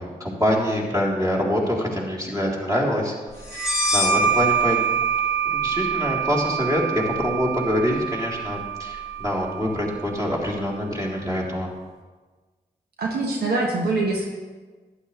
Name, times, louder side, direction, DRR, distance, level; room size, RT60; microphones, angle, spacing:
voice 1, 0.0-3.1 3.5-4.8 5.5-11.7, equal, 20° right, -4 dB, 3.5 m, -25 dB
sound 1, 3.5-10.8, right 5 dB, 5° right, 2.7 m, -25 dB
voice 2, 13.0-14.3, right 3 dB, 90° right, -1 dB, 1.3 m, -24 dB
11.5 x 10.0 x 3.3 m, 1.3 s
cardioid pair, 45°, 16 cm